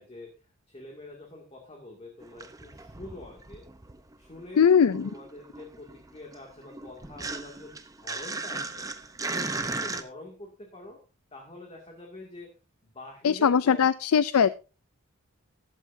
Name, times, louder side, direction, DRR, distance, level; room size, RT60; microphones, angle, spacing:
voice 1, 0.0-3.7 4.2-4.7 5.0-8.9 9.2-11.0 11.3-12.6 12.8-14.0, left 2 dB, 30° left, 0 dB, 2.4 m, -46 dB
sound 1, 2.2-4.1 4.4-10.0, right 3 dB, 15° right, 0.8 m, -36 dB
voice 2, 4.6-5.1 13.2-14.5, left 7 dB, 85° left, 16 dB, 0.4 m, -20 dB
14.5 x 12.0 x 2.7 m, 0.32 s
head